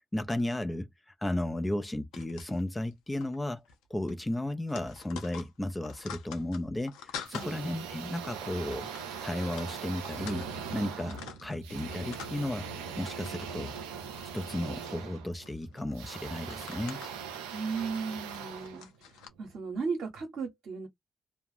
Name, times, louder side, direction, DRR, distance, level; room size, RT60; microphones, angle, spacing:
voice 1, 0.1-0.9 1.2-3.6 3.9-8.9 9.2-10.5 10.7-12.7 13.0-13.7 14.3-17.0, left 1 dB, 20° left, 0.5 m, -34 dB
sound 1, 2.1-2.9 3.2-3.4 3.7-3.8 4.1-7.5 8.1-8.3 8.7-10.6 10.9-12.6 12.9-13.5 13.8-14.9 15.5-19.3, left 7 dB, 85° left, 0.7 m, -47 dB
motor noise, 7.3-19.5, right 7 dB, 90° right, 0.4 m, -41 dB
voice 2, 17.5-20.9, right 5 dB, 70° right, 0.8 m, -36 dB
2.4 x 2.1 x 3.2 m
hypercardioid pair, 45°, 0 cm